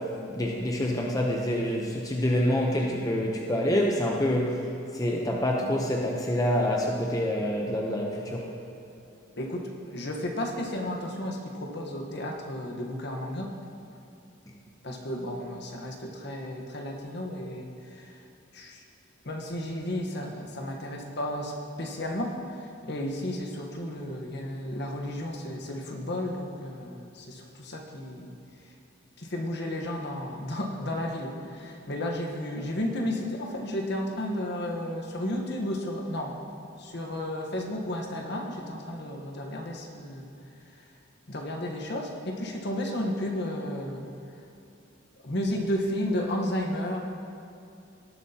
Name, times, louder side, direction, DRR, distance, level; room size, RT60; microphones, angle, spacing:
voice 1, 0.0-4.7 4.9-8.5, left 1 dB, 20° left, -1 dB, 0.7 m, -27 dB
voice 2, 9.4-13.5 14.8-18.2 18.5-18.8 19.2-28.3 29.2-36.4 36.8-40.3 41.3-44.1 45.2-47.0, left 1 dB, 55° left, 1 dB, 1.1 m, -33 dB
18.5 x 7.4 x 2.8 m, 2.6 s
head